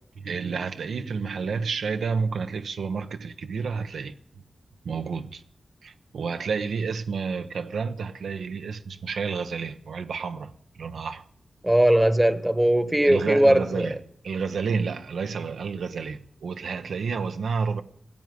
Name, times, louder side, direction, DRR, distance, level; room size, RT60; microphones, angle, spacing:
voice 1, 0.2-4.1 4.8-5.4 5.8-10.5 10.8-11.3 13.0-14.0 14.2-17.8, right 5 dB, 85° right, 0.6 m, -30 dB
voice 2, 11.6-13.9, right 1 dB, 10° right, 1.1 m, -19 dB
15.5 x 7.9 x 9.3 m
cardioid pair, 40°, 0 cm